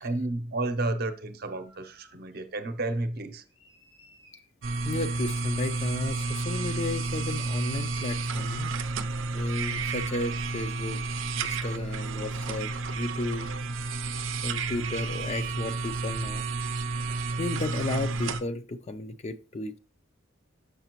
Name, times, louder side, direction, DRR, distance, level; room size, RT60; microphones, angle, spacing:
voice 1, 0.0-3.4, right 2 dB, 55° right, 0.7 m, -31 dB
sound 1, 1.4-2.4 2.8-4.5 6.5-6.6 9.5-9.6 12.3-12.4 14.1-14.3 16.1-16.3 16.6-16.8, left 1 dB, 80° left, 3.9 m, -61 dB
sound 2, 4.6-18.4, right 3 dB, 90° right, 0.5 m, -31 dB
voice 2, 4.8-8.7 9.3-11.0 11.3-13.5 14.4-16.4 17.4-19.8, left 2 dB, 35° left, 0.5 m, -33 dB
6.8 x 5.8 x 3.0 m
head